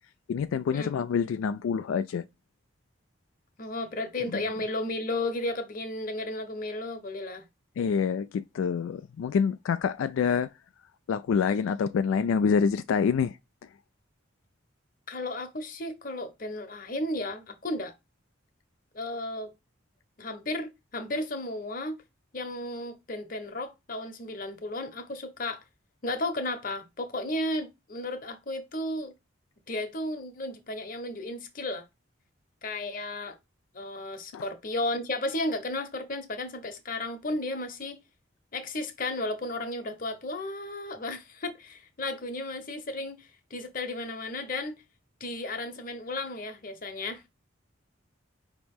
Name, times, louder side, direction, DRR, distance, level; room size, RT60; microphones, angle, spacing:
voice 1, 0.3-2.2 7.8-10.5 11.1-13.4 34.3-34.4, left 6 dB, 80° left, 0.3 m, -26 dB
voice 2, 3.6-7.4 15.1-17.9 18.9-19.5 20.2-22.0 22.3-25.6 26.0-29.1 29.7-31.8 32.6-33.4 33.7-38.0 38.5-44.8 45.2-47.2, left 2 dB, 45° left, 0.9 m, -34 dB
5.2 x 2.9 x 3.5 m
head